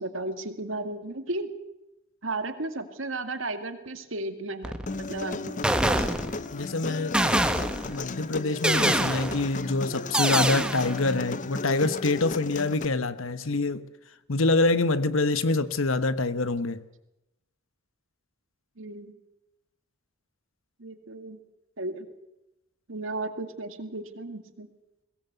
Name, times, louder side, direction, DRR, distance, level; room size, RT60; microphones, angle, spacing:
voice 1, 0.0-1.5 2.2-6.0 18.8-19.1 20.8-21.4 21.8-22.1 22.9-24.7, right 2 dB, 65° right, 2.1 m, -34 dB
sound 1, 4.6-5.1 5.6-6.6 7.1-8.0 8.6-9.5 10.1-11.0, right 1 dB, 5° right, 1.2 m, -25 dB
Human voice, 4.9-12.8, left 3 dB, 35° left, 0.7 m, -35 dB
voice 2, 6.5-7.2 7.9-13.8 14.3-16.8, left 3 dB, 70° left, 1.2 m, -26 dB
22.0 x 17.5 x 8.1 m
head